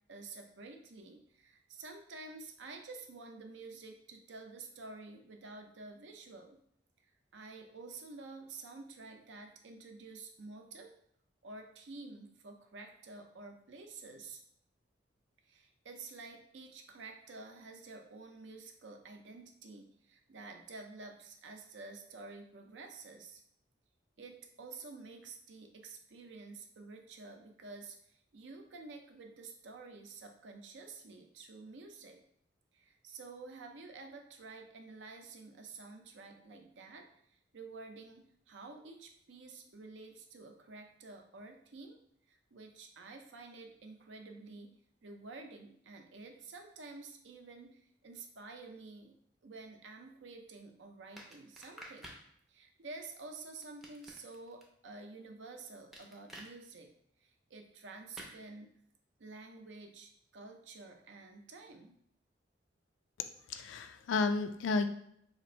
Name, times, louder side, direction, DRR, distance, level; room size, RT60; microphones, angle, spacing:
voice 1, 0.1-6.6 7.3-10.9 11.4-14.4 15.5-23.4 24.2-32.2 32.7-42.0 42.3-44.8 45.0-49.1 49.4-52.1 52.5-56.9 57.2-58.7 59.2-61.9, right 3 dB, 75° right, 4 dB, 0.5 m, -50 dB
sound 1, 51.2-52.2 53.6-54.6 55.9-56.5 58.2-58.4, right 1 dB, ahead, 0.4 m, -50 dB
voice 2, 63.2-64.9, left 3 dB, 85° left, 9 dB, 0.3 m, -32 dB
2.9 x 2.5 x 4.3 m, 0.70 s
head